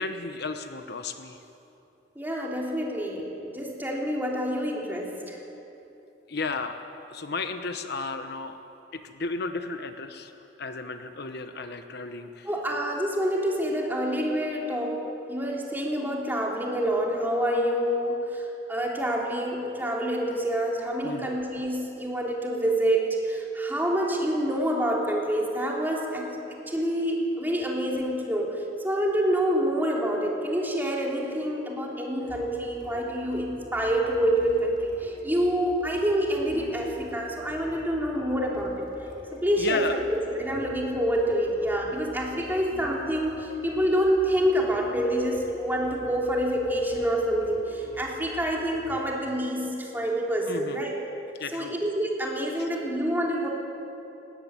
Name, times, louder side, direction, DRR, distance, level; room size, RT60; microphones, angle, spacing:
voice 1, 0.0-1.4 6.3-6.8 7.1-8.6 8.9-10.3 10.6-12.5 21.0-21.4 39.6-40.0 50.5-50.8 51.4-51.7 52.6-52.7, left 4 dB, 60° left, 8 dB, 1.0 m, -33 dB
voice 2, 2.1-5.4 12.5-38.8 39.3-51.0 51.5-53.5, equal, 10° right, -2 dB, 3.3 m, -27 dB
sound 1, 32.3-49.0, equal, 25° left, 5.5 m, -46 dB
19.5 x 18.5 x 9.6 m, 2.9 s
head